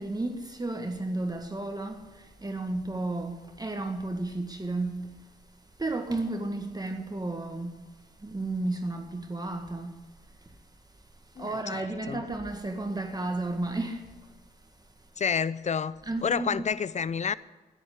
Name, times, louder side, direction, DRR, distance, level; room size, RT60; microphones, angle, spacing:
voice 1, 0.0-5.1 5.8-7.8 8.2-9.9 11.4-14.1 16.0-16.6, right 2 dB, 25° right, 1.8 m, -33 dB
voice 2, 11.4-11.8 12.1-12.2 15.2-17.3, left 6 dB, 40° left, 0.6 m, -29 dB
10.5 x 10.0 x 9.7 m
supercardioid pair, 50°, 17 cm